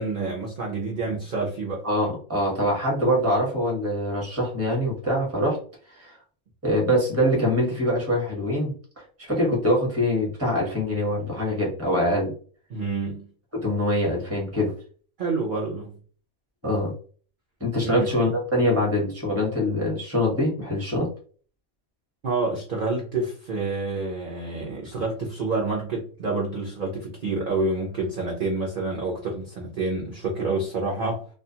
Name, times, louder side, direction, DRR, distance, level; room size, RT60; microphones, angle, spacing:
voice 1, 0.0-1.8 12.7-13.3 15.2-15.9 17.8-18.1 22.2-31.2, right 3 dB, 55° right, -2 dB, 0.5 m, -28 dB
voice 2, 1.8-5.6 5.9-6.2 6.6-8.7 9.2-12.3 13.5-14.7 16.6-16.9 17.6-21.1, equal, 10° right, -2 dB, 0.9 m, -24 dB
2.4 x 2.3 x 2.7 m, 0.43 s
omnidirectional pair, 1.5 m